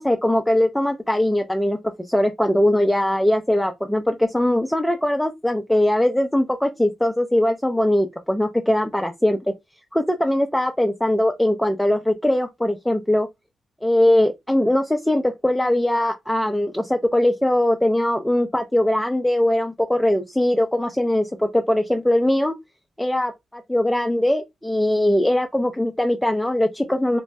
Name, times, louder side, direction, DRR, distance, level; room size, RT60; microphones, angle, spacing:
voice 1, 0.0-1.8 2.1-9.4 9.9-13.3 13.8-22.6 23.0-27.2, left 1 dB, 5° left, 0.4 m, -21 dB
2.6 x 2.0 x 3.1 m
cardioid pair, 60°, 0 cm